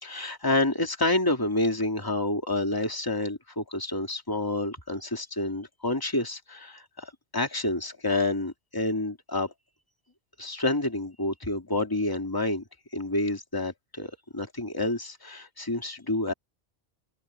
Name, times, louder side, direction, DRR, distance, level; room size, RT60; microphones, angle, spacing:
voice 1, 0.0-9.5 10.4-12.6 12.9-16.3, left 2 dB, 20° left, 2.6 m, -28 dB
open air
omnidirectional pair, 1.1 m